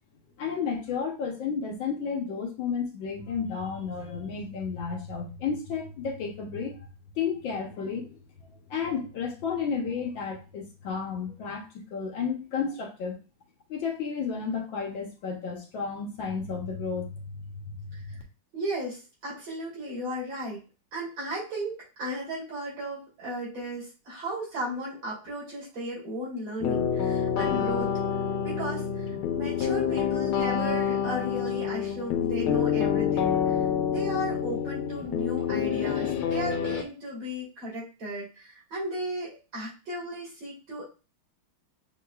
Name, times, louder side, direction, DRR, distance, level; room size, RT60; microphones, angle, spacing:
voice 1, 0.4-6.7 7.2-8.2 8.7-11.7 11.9-13.2 13.7-18.2, left 6 dB, 70° left, 0 dB, 1.6 m, -32 dB
voice 2, 18.5-20.6 20.9-27.9 28.4-33.4 33.9-40.8, equal, 65° right, -7 dB, 3.7 m, -35 dB
sound 1, 26.6-36.8, left 8 dB, 85° left, 1.6 m, -27 dB
6.6 x 2.9 x 2.3 m, 0.31 s
omnidirectional pair, 2.3 m